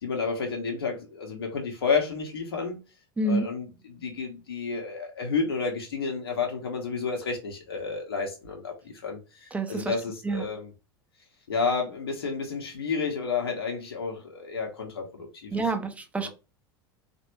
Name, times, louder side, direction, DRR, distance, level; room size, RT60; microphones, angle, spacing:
voice 1, 0.0-2.8 3.2-10.7 11.5-15.6 16.2-16.3, left 5 dB, 70° left, 1.1 m, -31 dB
voice 2, 3.2-3.5 9.5-9.9 10.2-10.5 15.5-16.3, right 2 dB, 10° right, 0.8 m, -28 dB
4.1 x 2.6 x 3.0 m
figure-of-eight pair, 80°, 13 cm